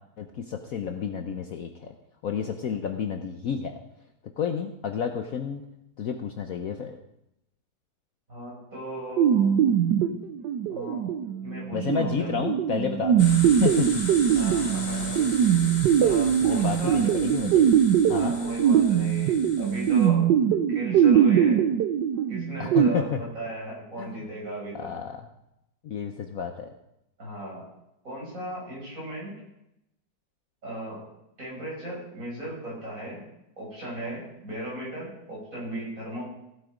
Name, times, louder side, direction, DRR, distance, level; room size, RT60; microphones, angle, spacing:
voice 1, 0.2-1.9 2.2-3.8 4.4-5.6 6.0-7.0 11.7-13.3 13.6-13.9 16.4-17.7 18.1-18.4 22.6-23.2 24.0-24.1 24.7-25.2 25.8-26.7, left 7 dB, 60° left, 6 dB, 1.1 m, -30 dB
voice 2, 8.3-9.6 10.7-11.1 11.4-12.4 14.3-15.2 16.0-17.0 18.1-20.3 20.7-21.7 22.3-24.9 27.2-27.7 28.0-29.3 30.6-31.0 31.4-33.2 33.6-36.2, right 1 dB, 45° right, -4 dB, 5.7 m, -36 dB
sound 1, 9.2-22.9, right 9 dB, 75° right, 1.4 m, -22 dB
sound 2, 13.2-20.1, left 2 dB, 25° left, 1.6 m, -37 dB
15.5 x 8.0 x 5.0 m, 0.84 s
omnidirectional pair, 2.0 m